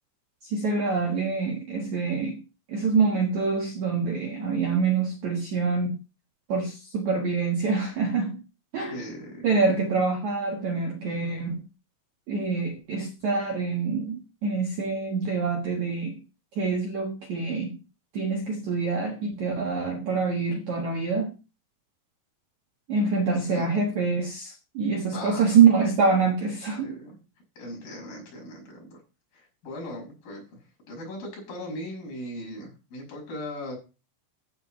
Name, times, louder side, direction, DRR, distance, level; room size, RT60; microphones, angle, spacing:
voice 1, 0.4-2.4 2.7-6.0 6.5-8.4 8.7-9.0 9.4-11.6 12.3-16.2 16.5-17.8 18.1-21.3 22.9-27.0, right 5 dB, 75° right, 1.7 m, -25 dB
voice 2, 8.9-9.5 23.4-23.7 25.1-25.6 26.8-27.2 27.6-29.0 29.3-30.6 30.9-33.8, left 1 dB, 45° left, 7.4 m, -38 dB
14.5 x 6.1 x 5.1 m
omnidirectional pair, 5.8 m